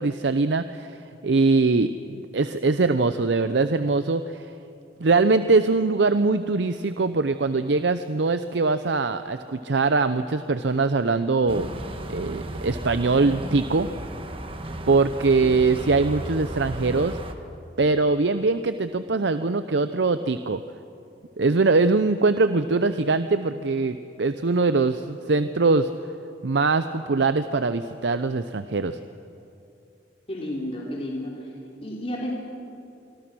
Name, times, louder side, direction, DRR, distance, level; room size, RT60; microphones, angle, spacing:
voice 1, 0.0-4.5 5.0-11.7 12.1-13.9 14.9-17.2 17.8-20.6 21.4-25.9 26.4-29.0, right 3 dB, 75° right, 11 dB, 0.6 m, -22 dB
sound 1, 11.5-17.3, right 1 dB, 30° right, 1.3 m, -35 dB
voice 2, 30.3-31.4 31.8-32.3, left 1 dB, 30° left, -3 dB, 3.1 m, -31 dB
25.5 x 24.5 x 6.2 m, 2.7 s
head